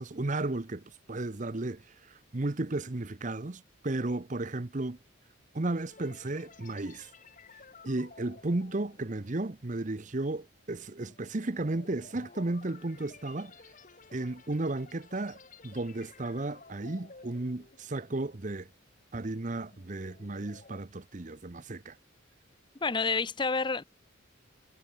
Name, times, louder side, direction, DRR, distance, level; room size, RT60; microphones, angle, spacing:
voice 1, 0.0-5.0 5.5-7.1 7.8-13.5 14.1-15.4 15.6-18.7 19.1-22.0, right 2 dB, 35° right, 0.8 m, -34 dB
sound 1, 5.9-18.4 18.7-19.0 19.5-20.8, left 4 dB, 40° left, 1.5 m, -55 dB
voice 2, 22.8-23.8, left 4 dB, 20° left, 0.6 m, -29 dB
head